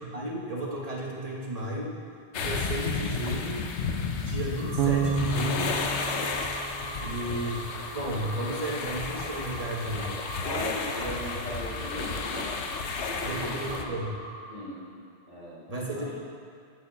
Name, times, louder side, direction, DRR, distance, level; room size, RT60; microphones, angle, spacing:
voice 1, 0.0-1.9 2.3-3.7 4.2-5.8 7.0-10.2 13.2-14.1 15.7-16.1, right 1 dB, 35° right, -2 dB, 1.3 m, -33 dB
sound 1, 2.3-13.8, left 5 dB, 90° left, 1.0 m, -33 dB
sound 2, 4.6-14.4, right 1 dB, 5° left, 1.5 m, -42 dB
Bass guitar, 4.8-7.8, right 6 dB, 60° right, 0.7 m, -30 dB
voice 2, 10.4-12.6 12.8-13.9 14.5-14.8 15.3-16.1, equal, 45° left, -8 dB, 2.5 m, -38 dB
8.2 x 5.2 x 7.1 m, 2.4 s
omnidirectional pair, 1.1 m